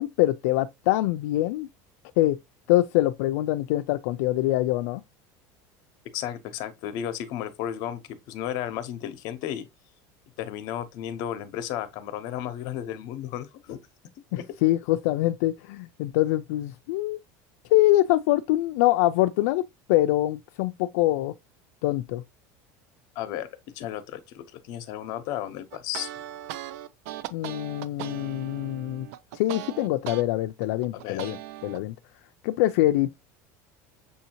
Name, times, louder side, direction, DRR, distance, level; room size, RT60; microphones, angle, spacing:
voice 1, 0.0-1.7 2.2-2.4 2.7-5.0 14.3-17.2 17.7-19.6 19.9-21.3 21.8-22.2 27.3-29.1 29.3-31.9 32.4-33.1, left 16 dB, 80° left, 0.3 m, -24 dB
voice 2, 6.1-9.7 10.4-13.8 14.4-14.5 23.2-23.5 23.7-26.1 31.0-31.4, left 11 dB, 55° left, 0.8 m, -34 dB
sound 1, 25.7-30.2 30.6-31.8, right 14 dB, 75° right, 0.5 m, -38 dB
6.8 x 2.7 x 2.8 m
cardioid pair, 160°, 8 cm